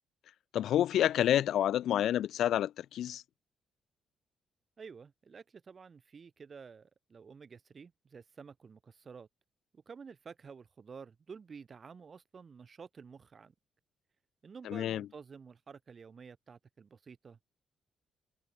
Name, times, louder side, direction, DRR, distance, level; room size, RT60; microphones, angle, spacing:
voice 1, 0.5-3.2 14.7-15.0, left 11 dB, 75° left, 0.4 m, -29 dB
voice 2, 4.8-9.3 9.7-13.5 14.4-17.5, right 5 dB, 40° right, 2.6 m, -51 dB
cardioid pair, 90°, 0 cm